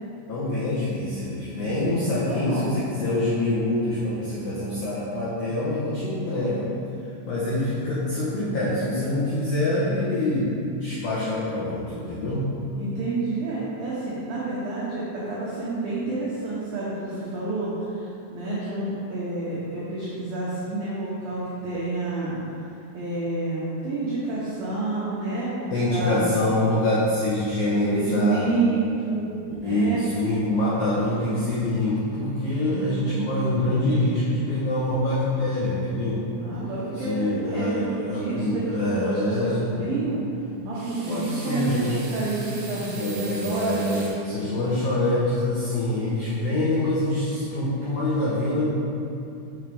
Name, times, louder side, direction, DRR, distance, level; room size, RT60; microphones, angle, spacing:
voice 1, 0.3-6.7 7.2-12.5 25.7-28.6 29.6-36.2 37.0-39.6 41.1-42.0 43.0-48.7, left 1 dB, 80° left, -9 dB, 2.1 m, -25 dB
voice 2, 1.5-2.7 12.8-22.4 22.9-25.5 25.9-26.3 27.9-29.3 29.5-30.0 32.6-34.2 36.4-40.2 40.6-44.5, right 3 dB, 80° right, -9 dB, 2.1 m, -29 dB
sound 1, 40.7-44.1, right 3 dB, 60° right, 2.6 m, -40 dB
7.2 x 6.5 x 3.4 m, 2.6 s
omnidirectional pair, 5.7 m